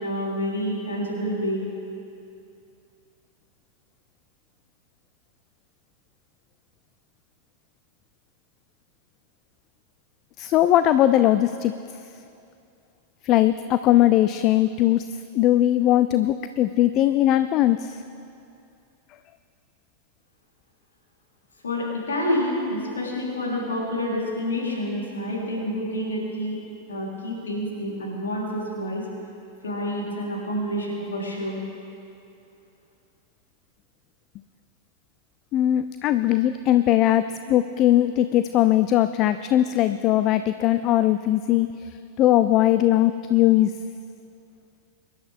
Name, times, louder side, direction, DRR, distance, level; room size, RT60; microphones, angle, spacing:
voice 1, 0.0-1.7 21.6-26.6 26.9-29.0 29.6-31.6, equal, 70° left, -4 dB, 3.7 m, -28 dB
voice 2, 10.4-11.7 13.2-15.1 15.3-18.0 35.5-43.7, left 13 dB, 35° left, 12 dB, 0.3 m, -20 dB
24.0 x 11.0 x 3.6 m, 2.6 s
figure-of-eight pair, 90°, 0 cm